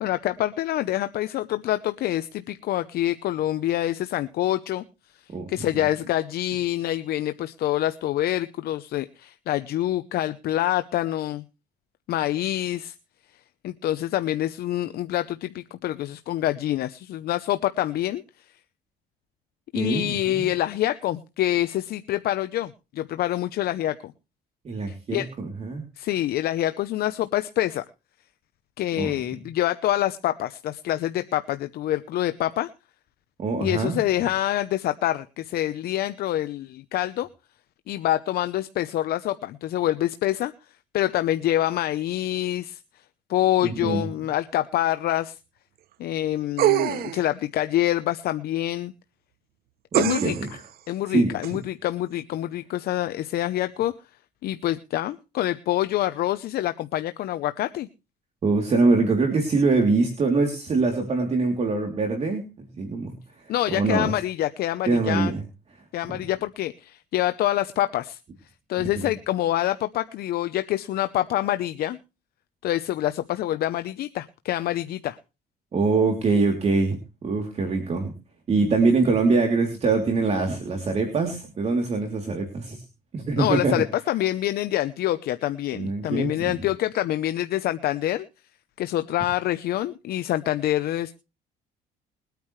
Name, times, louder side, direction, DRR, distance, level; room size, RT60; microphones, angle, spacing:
voice 1, 0.0-4.8 5.5-11.4 12.1-12.9 13.6-18.2 19.7-24.1 25.1-25.3 26.0-27.8 28.8-32.7 33.6-37.3 37.9-40.5 40.9-42.8 43.3-45.4 46.0-48.9 50.0-50.4 50.9-53.9 54.4-57.9 63.5-65.3 65.9-68.2 68.7-72.0 72.6-75.2 83.4-88.2 88.8-91.1, left 13 dB, 65° left, 11 dB, 0.8 m, -26 dB
voice 2, 19.7-20.5 24.6-25.8 29.0-29.3 33.4-34.0 43.6-44.1 49.9-50.5 51.1-51.3 58.4-63.1 63.4-64.1 64.9-65.4 68.9-69.1 75.7-78.1 78.5-82.8 83.1-83.8 85.7-86.5, right 3 dB, 40° right, 3 dB, 3.2 m, -24 dB
sound 1, 46.6-47.3 49.9-50.5 51.4-51.5, right 14 dB, 65° right, 0.7 m, -23 dB
22.0 x 9.3 x 3.2 m, 0.30 s
cardioid pair, 110°, 17 cm